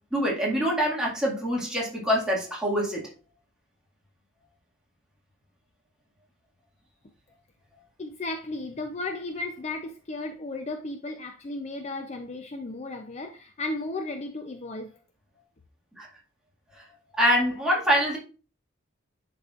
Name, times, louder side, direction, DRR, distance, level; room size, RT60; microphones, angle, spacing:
voice 1, 0.1-3.0 16.0-16.1 17.2-18.2, equal, 5° right, 1.8 m, -25 dB
voice 2, 8.0-14.9, left 2 dB, 35° left, 0.5 m, -34 dB
10.5 x 4.2 x 2.4 m
head